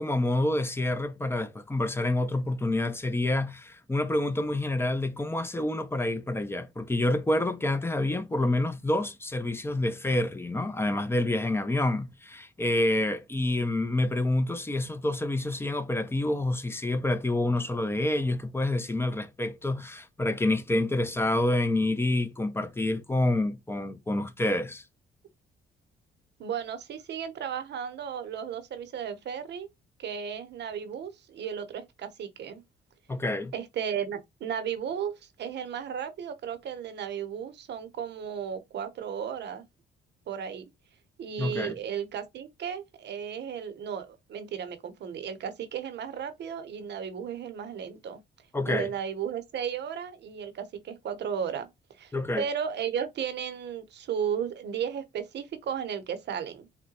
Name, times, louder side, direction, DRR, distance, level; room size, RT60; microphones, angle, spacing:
voice 1, 0.0-24.8 33.1-33.5 41.4-41.7 48.5-48.9 52.1-52.4, left 2 dB, 10° left, 0.5 m, -28 dB
voice 2, 26.4-29.7 30.0-32.6 33.5-35.1 35.4-39.6 40.3-40.6 41.2-48.2 48.7-51.7 52.0-56.7, right 8 dB, 60° right, 0.7 m, -34 dB
3.7 x 2.1 x 2.8 m
cardioid pair, 90°, 20 cm